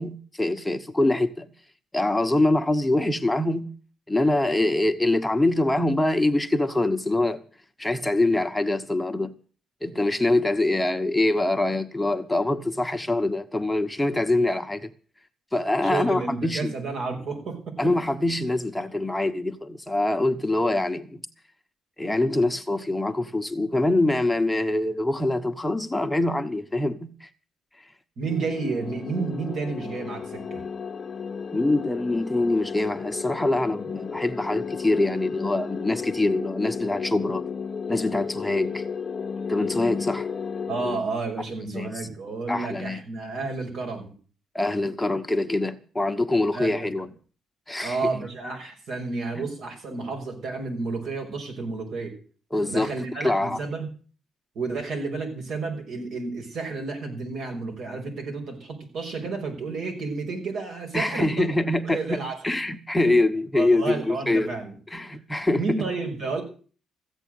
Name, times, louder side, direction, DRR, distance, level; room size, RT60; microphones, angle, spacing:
voice 1, 0.0-1.5 1.9-3.7 4.1-7.4 7.8-9.3 9.8-14.9 15.5-16.7 17.8-21.2 22.0-27.3 27.8-27.9 31.5-37.4 37.9-38.8 39.5-40.3 41.7-41.9 42.5-43.0 44.5-47.1 47.7-48.1 49.3-49.5 52.5-53.6 60.9-64.5 64.9-65.9, left 2 dB, 10° left, 1.1 m, -24 dB
voice 2, 15.8-17.9 28.2-30.6 40.7-44.1 46.5-46.9 47.8-52.2 52.7-53.9 54.5-62.3 63.5-64.8 65.5-66.4, right 4 dB, 70° right, 5.9 m, -31 dB
sound 1, 28.3-41.0, left 6 dB, 45° left, 0.6 m, -33 dB
15.0 x 8.1 x 9.2 m
cardioid pair, 90°, 0 cm